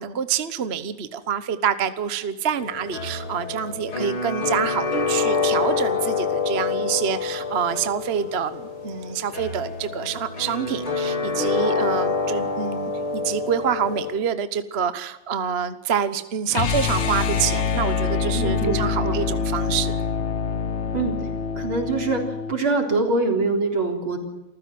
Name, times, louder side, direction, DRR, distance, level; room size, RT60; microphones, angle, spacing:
voice 1, 0.0-20.0, right 8 dB, 40° right, 12 dB, 1.0 m, -27 dB
sound 1, 2.6-14.1, left 5 dB, 75° left, 5.1 m, -27 dB
sound 2, 16.5-22.6, left 5 dB, 45° left, 1.0 m, -25 dB
voice 2, 18.3-19.2 20.9-21.1 21.6-22.2 22.5-24.2, right 3 dB, 70° right, 3 dB, 4.7 m, -24 dB
28.0 x 15.0 x 7.6 m, 1.0 s
omnidirectional pair, 2.3 m